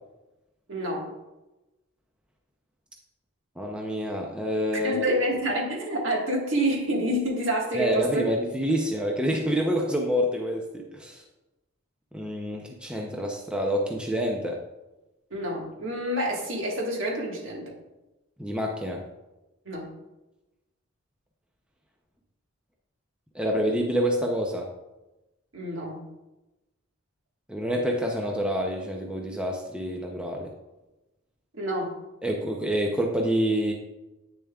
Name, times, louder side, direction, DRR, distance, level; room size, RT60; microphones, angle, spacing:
voice 1, 0.7-1.1 4.8-8.3 15.3-17.7 19.6-19.9 25.5-26.1 31.5-31.9, right 1 dB, 65° right, -1 dB, 1.6 m, -28 dB
voice 2, 3.6-5.1 7.7-11.2 12.1-14.6 18.4-19.0 23.3-24.7 27.5-30.5 32.2-33.7, equal, 5° right, 1 dB, 0.6 m, -27 dB
8.7 x 6.8 x 2.3 m, 1.0 s
head